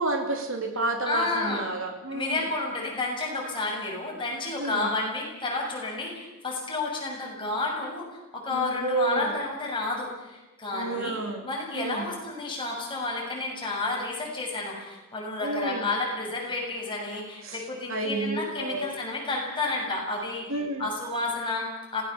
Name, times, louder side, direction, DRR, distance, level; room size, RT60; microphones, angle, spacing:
voice 1, 0.0-2.4 4.6-4.9 8.5-9.4 10.7-11.4 11.7-12.1 15.4-15.9 17.4-17.6 17.9-18.9 20.5-20.9, right 2 dB, 70° right, 3 dB, 2.9 m, -30 dB
voice 2, 1.0-1.6 2.1-8.1 8.3-20.4 20.8-22.0, left 2 dB, 25° left, -1 dB, 6.9 m, -31 dB
26.5 x 18.5 x 7.0 m, 1.0 s
head